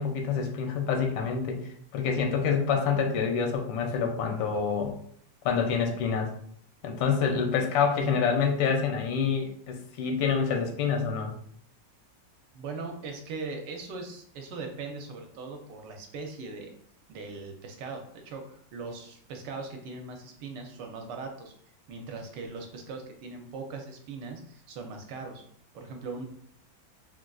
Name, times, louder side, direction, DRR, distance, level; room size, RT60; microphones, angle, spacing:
voice 1, 0.0-1.6 1.9-4.9 5.4-6.3 6.8-11.3, left 6 dB, 85° left, 3 dB, 1.3 m, -27 dB
voice 2, 12.5-16.7 17.1-21.5 21.9-25.4 25.7-26.2, right 4 dB, 75° right, 3 dB, 1.1 m, -40 dB
3.8 x 2.4 x 2.2 m, 0.62 s
omnidirectional pair, 2.0 m